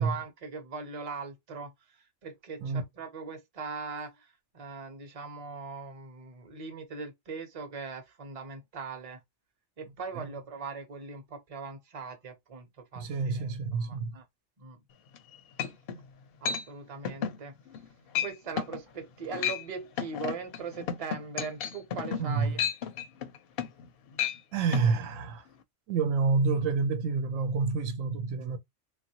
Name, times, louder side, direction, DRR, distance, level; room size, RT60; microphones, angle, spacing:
voice 1, 0.0-9.2 9.8-14.2 14.6-14.8 16.4-17.5 18.2-22.6, right 5 dB, 35° right, 0.7 m, -40 dB
voice 2, 12.9-14.2 22.2-22.5 24.5-25.5 25.9-28.6, right 4 dB, 90° right, 1.0 m, -28 dB
sound 1, 15.1-15.2 15.6-16.0 16.5-16.6 17.1-17.4 17.7-17.9 18.2-18.3 18.6-18.8 19.2-19.6 20.0-23.9 24.1-24.4 24.7-24.9, left 8 dB, 65° left, 0.6 m, -32 dB
3.1 x 2.4 x 2.8 m
omnidirectional pair, 1.3 m